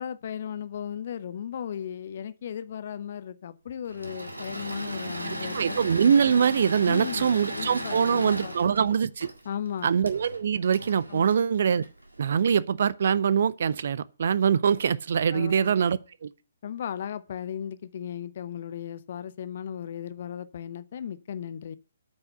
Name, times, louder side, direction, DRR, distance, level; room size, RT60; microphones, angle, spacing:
voice 1, 0.0-5.8 6.9-8.6 9.4-9.9 11.1-11.3 15.3-15.7 16.6-21.8, left 9 dB, 45° left, 0.6 m, -36 dB
Engine / Mechanisms, 3.9-12.3, right 1 dB, 80° right, 1.8 m, -36 dB
voice 2, 5.5-9.3 9.8-11.8 12.2-16.3, right 7 dB, 50° right, 0.5 m, -23 dB
9.0 x 5.8 x 7.9 m
figure-of-eight pair, 130°, 0 cm